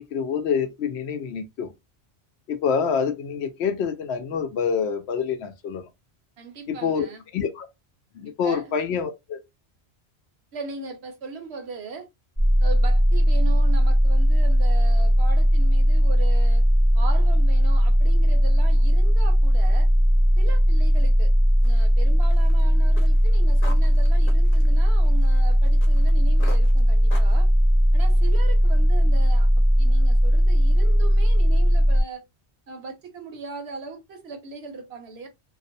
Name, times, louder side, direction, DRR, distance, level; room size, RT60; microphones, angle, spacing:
voice 1, 0.0-1.7 2.5-5.8 6.7-7.1 7.3-7.7 8.1-9.4, left 6 dB, 85° left, 0.8 m, -26 dB
voice 2, 6.4-7.2 8.4-8.7 10.5-12.1 12.6-16.6 16.9-19.9 20.4-21.3 21.6-27.5 27.9-32.2 32.7-35.3, right 4 dB, 80° right, 1.0 m, -38 dB
sound 1, 12.4-32.0, equal, 5° left, 0.8 m, -18 dB
sound 2, 21.5-26.2 26.4-27.4, left 3 dB, 60° left, 0.8 m, -44 dB
2.5 x 2.0 x 2.5 m
omnidirectional pair, 1.1 m